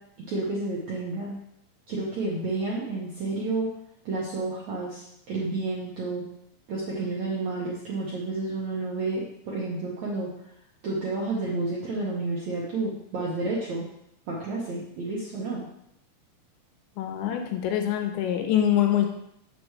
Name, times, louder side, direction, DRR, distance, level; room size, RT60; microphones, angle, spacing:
voice 1, 0.2-1.4 1.9-3.7 4.0-6.3 6.7-10.3 10.8-13.9 14.3-15.6, right 3 dB, 70° right, -6 dB, 1.7 m, -30 dB
voice 2, 17.0-19.1, left 10 dB, 85° left, 3 dB, 3.2 m, -24 dB
7.6 x 6.9 x 3.2 m, 0.76 s
omnidirectional pair, 5.1 m